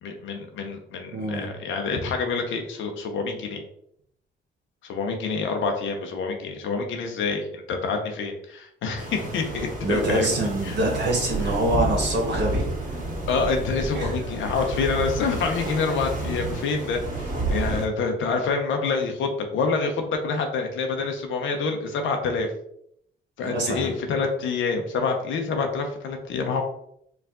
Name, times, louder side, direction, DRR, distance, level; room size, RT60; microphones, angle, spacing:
voice 1, 0.0-3.6 4.8-10.8 13.3-22.5 23.4-26.6, left 4 dB, 75° left, 3 dB, 0.7 m, -27 dB
voice 2, 1.1-1.5 9.8-13.0 13.9-14.2 23.4-23.9, right 1 dB, 60° right, -1 dB, 1.3 m, -25 dB
sound 1, 9.0-17.9, right 2 dB, 40° right, 1.6 m, -30 dB
4.7 x 2.5 x 3.6 m, 0.72 s
cardioid pair, 90°, 20 cm